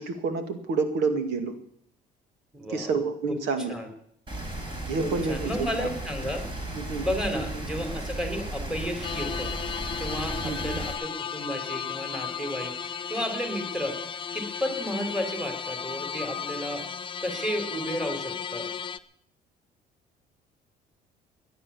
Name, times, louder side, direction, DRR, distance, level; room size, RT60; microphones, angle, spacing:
voice 1, 0.0-1.5 2.7-3.7 4.9-5.9 6.8-7.1 7.3-7.4 10.4-10.8, right 4 dB, 85° right, 8 dB, 2.3 m, -29 dB
voice 2, 2.5-3.0 3.3-3.4 3.7-3.9 5.0-6.4 7.0-9.5 10.0-12.7 13.1-14.0 14.3-16.9 17.2-18.7, equal, 5° right, 5 dB, 3.7 m, -32 dB
Rain, 4.3-10.9, right 1 dB, 30° right, 4.9 m, -35 dB
sound 1, 9.0-19.0, left 7 dB, 30° left, 0.7 m, -35 dB
18.0 x 10.5 x 7.2 m, 0.68 s
cardioid pair, 110°, 17 cm